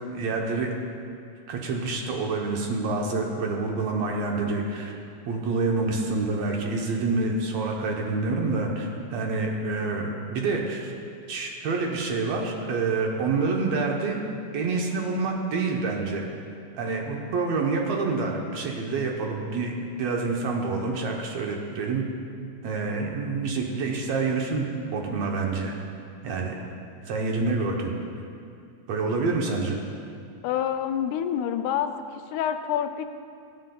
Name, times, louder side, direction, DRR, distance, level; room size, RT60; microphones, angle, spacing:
voice 1, 0.1-0.7 1.5-4.9 5.3-10.9 11.3-14.2 14.5-16.3 16.7-22.0 22.6-25.7 26.2-26.6 27.1-27.9 28.9-29.8, right 3 dB, 65° right, 0 dB, 1.9 m, -27 dB
voice 2, 30.4-31.9 32.3-33.1, left 9 dB, 85° left, 8 dB, 2.0 m, -27 dB
21.5 x 7.8 x 2.3 m, 2.4 s
omnidirectional pair, 3.5 m